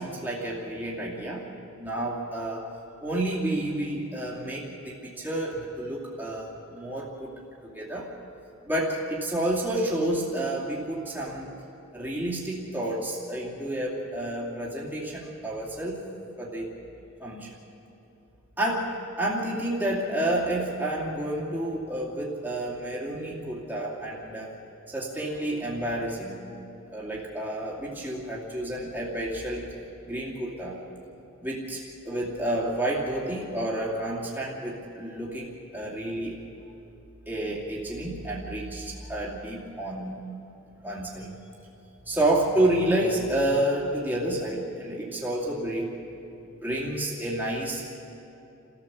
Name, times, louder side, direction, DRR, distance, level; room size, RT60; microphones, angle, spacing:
voice 1, 0.0-1.5 1.8-2.7 3.0-7.3 7.6-8.1 8.6-11.5 11.9-16.0 16.4-16.7 17.2-17.5 18.6-24.5 24.9-26.4 26.9-29.7 30.1-30.8 31.4-36.4 37.3-40.1 40.8-41.3 42.1-46.0 46.6-47.9, right 1 dB, 10° right, -5 dB, 2.6 m, -30 dB
29.5 x 14.0 x 7.1 m, 2.9 s
head